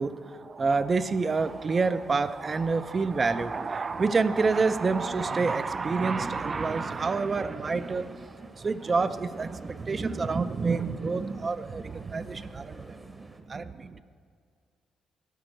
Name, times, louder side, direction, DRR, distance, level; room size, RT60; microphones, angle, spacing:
voice 1, 0.0-14.0, right 4 dB, 35° right, 13 dB, 0.4 m, -28 dB
sound 1, 1.4-13.4, right 2 dB, 20° right, 0.9 m, -51 dB
11.5 x 5.0 x 7.7 m, 2.2 s
cardioid pair, 90°, 0 cm